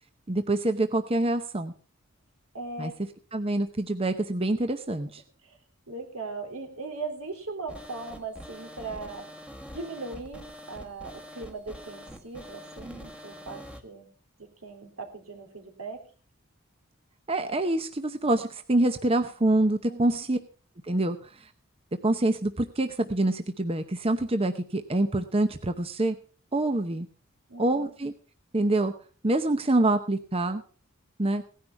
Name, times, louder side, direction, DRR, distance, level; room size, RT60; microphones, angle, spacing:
voice 1, 0.3-1.7 2.8-2.9 3.3-5.2 17.3-20.4 20.8-21.2 22.0-26.2 26.5-27.1 27.6-28.1 28.5-28.9 29.2-30.6 31.2-31.4, right 2 dB, 25° right, 8 dB, 0.8 m, -26 dB
voice 2, 2.5-3.0 5.4-5.6 5.9-9.3 9.7-14.1 14.4-16.0 19.9-20.3 27.5-27.9, right 3 dB, 85° right, 4 dB, 3.4 m, -39 dB
sound 1, 7.7-13.8, equal, 5° right, 1.3 m, -44 dB
17.5 x 10.5 x 4.5 m, 0.40 s
head